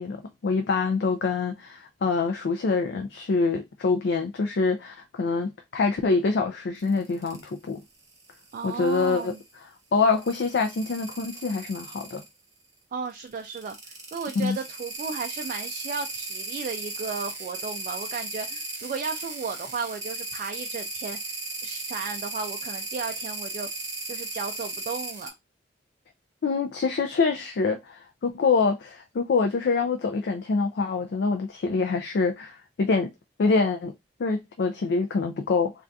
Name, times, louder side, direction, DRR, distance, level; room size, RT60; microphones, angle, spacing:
voice 1, 0.0-7.8 8.6-9.3 9.9-12.2 14.4-14.6 26.4-33.1 33.4-33.9 34.2-35.7, left 4 dB, 65° left, 0.4 m, -25 dB
sound 1, 6.8-7.5 8.1-9.4 10.1-12.3 13.4-25.3, right 2 dB, 20° right, 0.9 m, -36 dB
voice 2, 8.5-9.4 12.9-13.8 14.1-21.2 21.6-23.7 24.1-25.3, right 5 dB, 45° right, 0.3 m, -34 dB
2.6 x 2.4 x 3.3 m
head